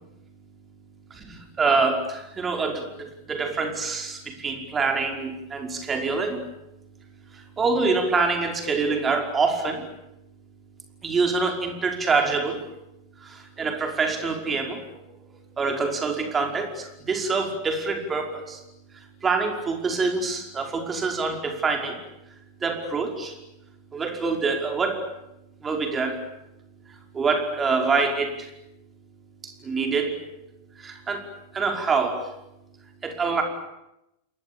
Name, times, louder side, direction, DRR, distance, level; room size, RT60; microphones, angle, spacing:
voice 1, 1.1-6.4 7.3-9.9 11.0-12.6 13.2-15.0 15.6-18.6 18.9-22.0 22.3-22.4 22.6-23.4 23.9-25.0 25.6-26.2 26.9-28.5 29.4-30.2 30.8-32.3 33.0-33.4, right 4 dB, 20° right, 4 dB, 5.4 m, -26 dB
28.5 x 22.0 x 8.7 m, 0.89 s
figure-of-eight pair, 90°, 0 cm